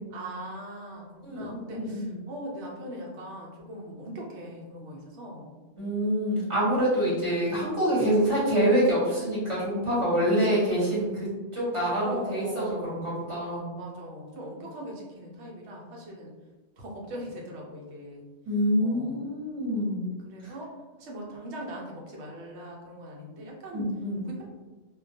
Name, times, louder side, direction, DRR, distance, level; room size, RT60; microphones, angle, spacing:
voice 1, 0.1-5.5 10.4-11.2 12.0-13.2 13.7-16.3 16.8-18.3 18.8-19.3 20.2-20.7 21.0-23.9 24.3-24.4, equal, 70° right, -2 dB, 0.9 m, -40 dB
voice 2, 1.2-2.1 5.8-13.7 18.4-20.1 20.4-20.5 23.7-24.2, equal, 30° right, -9 dB, 0.9 m, -26 dB
2.2 x 2.2 x 2.6 m, 1.2 s
omnidirectional pair, 1.2 m